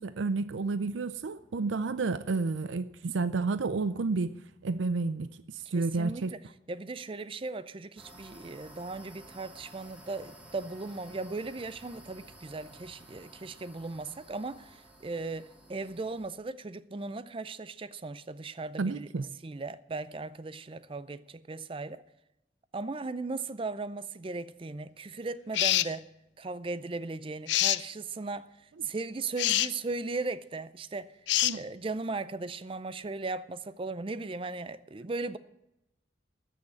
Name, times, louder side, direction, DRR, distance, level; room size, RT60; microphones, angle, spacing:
voice 1, 0.0-6.3 18.8-19.3 31.4-31.6, right 3 dB, 85° right, 0.5 m, -31 dB
voice 2, 5.7-6.4 6.7-19.1 19.4-22.0 22.7-26.1 26.4-28.5 28.8-31.1 31.5-35.4, right 3 dB, 30° right, 0.4 m, -37 dB
sound 1, 7.9-16.3, right 1 dB, 10° right, 1.9 m, -53 dB
sound 2, 25.5-25.9 27.5-27.8 29.4-29.7 31.3-31.6, left 15 dB, 70° left, 0.4 m, -25 dB
14.0 x 6.5 x 8.5 m
head